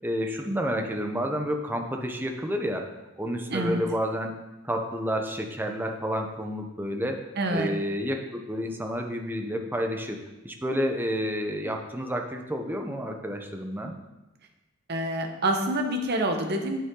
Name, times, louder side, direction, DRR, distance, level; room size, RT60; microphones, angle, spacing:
voice 1, 0.0-2.9 3.2-4.3 4.6-7.2 7.5-13.9, equal, 10° right, 3 dB, 0.9 m, -30 dB
voice 2, 3.5-3.8 7.4-7.7 14.9-16.8, right 1 dB, 55° right, 4 dB, 1.1 m, -27 dB
9.5 x 8.1 x 3.8 m, 1.0 s
head